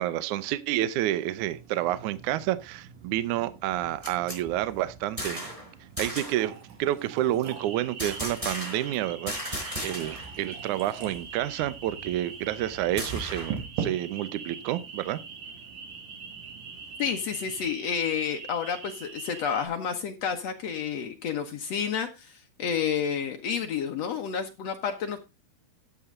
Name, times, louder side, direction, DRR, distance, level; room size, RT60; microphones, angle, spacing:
voice 1, 0.0-5.5 6.0-6.5 6.8-15.2, right 13 dB, 75° right, 1.8 m, -29 dB
sound 1, 1.4-17.7, right 7 dB, 60° right, 3.4 m, -44 dB
sound 2, 3.7-5.7 6.0-6.5 8.0-9.0 9.3-10.3 10.6-10.7 11.0-13.6, equal, 10° right, 4.2 m, -36 dB
sound 3, 7.4-19.7, right 5 dB, 45° right, 2.2 m, -44 dB
voice 2, 17.0-25.2, left 7 dB, 75° left, 1.5 m, -30 dB
13.0 x 8.8 x 3.7 m
omnidirectional pair, 4.6 m